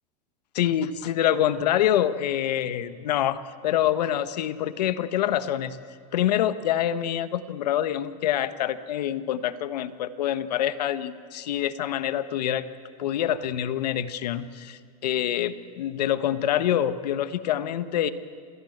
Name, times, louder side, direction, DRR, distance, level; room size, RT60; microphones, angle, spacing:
voice 1, 0.5-5.8 6.1-12.6 13.0-18.1, left 11 dB, 80° left, 13 dB, 1.3 m, -26 dB
27.5 x 19.0 x 8.0 m, 2.1 s
supercardioid pair, 130°, 21 cm